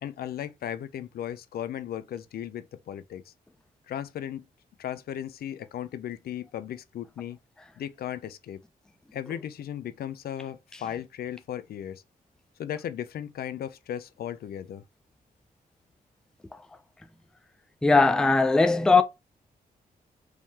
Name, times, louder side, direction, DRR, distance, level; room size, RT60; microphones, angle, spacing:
voice 1, 0.0-3.3 3.9-4.4 4.8-7.4 7.8-8.6 9.1-12.0 12.6-14.8, left 10 dB, 75° left, 0.5 m, -36 dB
voice 2, 17.8-19.0, left 3 dB, 5° left, 0.4 m, -19 dB
4.7 x 3.7 x 2.8 m
wide cardioid pair, 180°, 16 cm